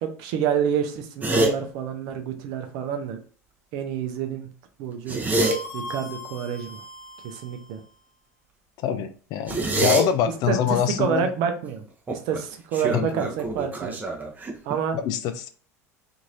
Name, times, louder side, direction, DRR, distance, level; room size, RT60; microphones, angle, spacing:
voice 1, 0.0-3.2 3.7-4.5 4.8-5.2 5.7-6.8 7.2-7.8 10.5-11.8 12.1-13.9 14.6-15.0, right 7 dB, 55° right, 6 dB, 0.6 m, -28 dB
sound 1, 1.2-1.5 4.9-5.6 9.5-10.0 12.1-12.4 12.7-14.8, right 2 dB, 20° right, 0.7 m, -25 dB
sound 2, 5.4-7.8, left 1 dB, 80° left, 0.9 m, -39 dB
voice 2, 8.8-11.3 12.9-13.1 14.9-15.5, left 9 dB, 50° left, 10 dB, 0.4 m, -25 dB
2.9 x 2.7 x 2.6 m, 0.42 s
figure-of-eight pair, 75°, 8 cm